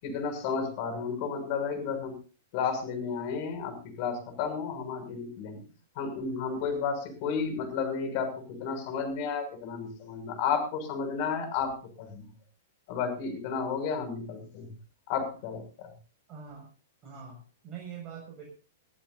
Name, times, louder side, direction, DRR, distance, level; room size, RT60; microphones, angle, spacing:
voice 1, 0.0-2.1 2.5-5.6 5.9-12.3 12.9-14.7 15.1-15.9, left 6 dB, 45° left, 8 dB, 6.4 m, -32 dB
voice 2, 16.3-16.7 17.0-18.5, right 7 dB, 30° right, -1 dB, 6.0 m, -44 dB
22.0 x 15.0 x 2.7 m, 0.34 s
hypercardioid pair, 110°, 0 cm